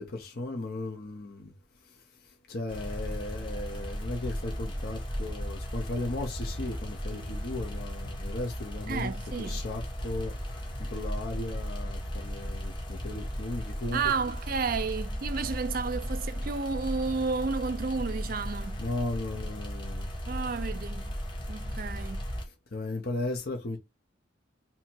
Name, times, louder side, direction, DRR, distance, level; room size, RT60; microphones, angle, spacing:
voice 1, 0.0-1.5 2.5-9.1 9.4-14.0 18.8-20.1 22.7-23.8, left 2 dB, 55° left, 0.8 m, -36 dB
sound 1, 2.7-22.5, equal, 25° left, 1.1 m, -36 dB
voice 2, 8.9-9.6 13.9-18.8 20.3-21.1 21.5-22.2, right 5 dB, 50° right, 0.4 m, -32 dB
2.8 x 2.8 x 4.4 m
head